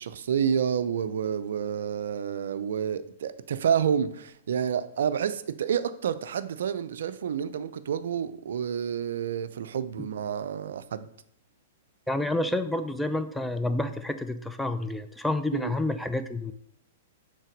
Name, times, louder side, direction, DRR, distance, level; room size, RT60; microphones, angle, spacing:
voice 1, 0.0-11.1 15.5-15.8, right 8 dB, 65° right, 0.4 m, -29 dB
voice 2, 12.1-16.5, left 1 dB, 5° left, 0.5 m, -29 dB
6.3 x 3.9 x 5.1 m
figure-of-eight pair, 105°, 0 cm